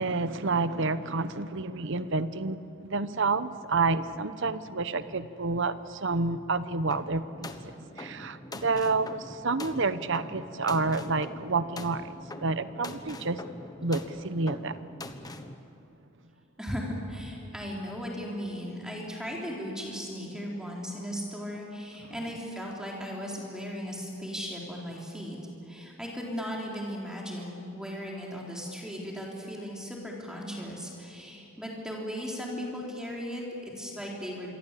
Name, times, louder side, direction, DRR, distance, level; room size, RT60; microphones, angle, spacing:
voice 1, 0.0-7.6 7.9-13.4 13.8-14.9, right 3 dB, 55° right, 13 dB, 0.9 m, -29 dB
sound 1, 6.9-15.5, left 2 dB, 20° left, 1.1 m, -43 dB
voice 2, 16.6-25.4 25.6-34.5, equal, 5° right, -2 dB, 4.1 m, -37 dB
27.0 x 23.5 x 8.5 m, 2.8 s
head